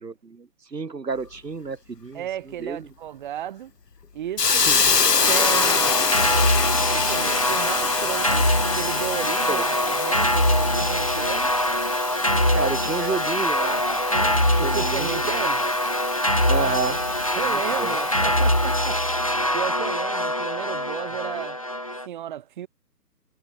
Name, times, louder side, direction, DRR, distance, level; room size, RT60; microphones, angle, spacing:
voice 1, 0.0-2.3 2.6-2.9 4.7-5.0 9.5-9.6 12.5-13.8 14.1-15.1 15.3-15.5 16.5-17.0 17.4-18.0, right 4 dB, 75° right, 4.9 m, -30 dB
voice 2, 2.1-3.7 4.1-4.7 5.3-5.9 6.9-8.5 8.7-11.5 14.6-15.7 17.3-19.0 19.5-21.6 22.0-22.7, right 11 dB, 30° right, 3.0 m, -33 dB
Hiss, 4.4-19.2, left 5 dB, 70° left, 3.1 m, -27 dB
sound 1, 5.2-22.1, left 1 dB, 20° left, 0.6 m, -23 dB
figure-of-eight pair, 155°, 49 cm